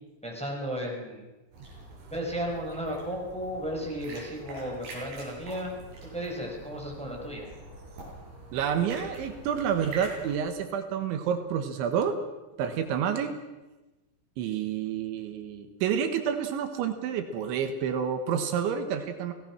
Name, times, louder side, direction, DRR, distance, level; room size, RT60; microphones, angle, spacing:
voice 1, 0.2-1.2 2.1-5.7 6.1-7.5, equal, ahead, -1 dB, 4.5 m, -34 dB
sound 1, 1.5-10.4, right 2 dB, 60° right, 9.6 m, -45 dB
voice 2, 8.5-12.2 12.6-13.3 14.4-19.3, right 8 dB, 80° right, 7 dB, 3.7 m, -29 dB
29.0 x 17.5 x 6.1 m, 1.1 s
omnidirectional pair, 5.4 m